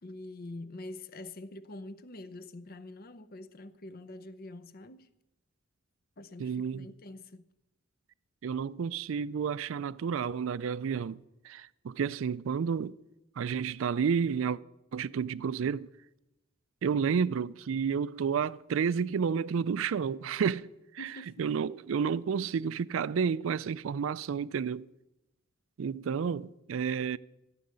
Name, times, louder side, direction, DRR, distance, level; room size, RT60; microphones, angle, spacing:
voice 1, 0.0-5.1 6.2-7.4 21.0-21.5, left 2 dB, 45° left, 0.7 m, -45 dB
voice 2, 6.4-6.9 8.4-13.0 13.4-14.6 14.9-15.9 16.8-20.7 20.9-21.1 21.4-24.9 25.8-27.2, right 6 dB, 65° right, 0.4 m, -31 dB
15.5 x 6.5 x 9.5 m
head